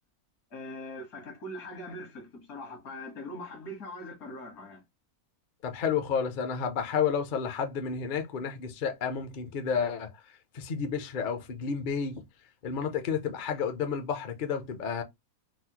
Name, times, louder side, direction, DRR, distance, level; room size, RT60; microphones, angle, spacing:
voice 1, 0.5-4.8, left 1 dB, 70° left, 1.8 m, -41 dB
voice 2, 5.6-10.1 10.5-12.2 12.6-15.0, left 6 dB, 55° left, 0.5 m, -31 dB
4.1 x 2.0 x 2.8 m
omnidirectional pair, 1.6 m